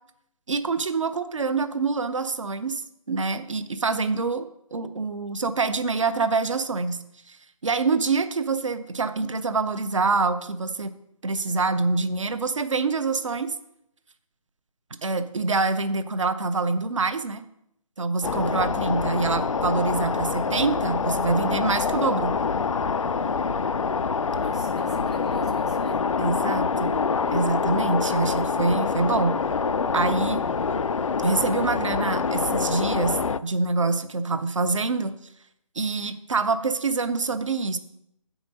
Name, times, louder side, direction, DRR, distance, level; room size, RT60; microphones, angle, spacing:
voice 1, 0.5-2.8 3.1-7.4 7.6-10.9 11.2-13.5 15.0-17.4 18.0-22.4 26.2-26.9 27.3-29.4 29.9-30.4 31.2-35.1 35.8-37.8, right 3 dB, 60° right, 10 dB, 0.8 m, -25 dB
sound 1, 18.2-33.4, left 5 dB, 60° left, 0.4 m, -26 dB
voice 2, 18.7-19.1 24.3-26.0, right 1 dB, 10° right, 3 dB, 0.3 m, -41 dB
8.1 x 5.1 x 6.2 m, 0.78 s
figure-of-eight pair, 150°, 18 cm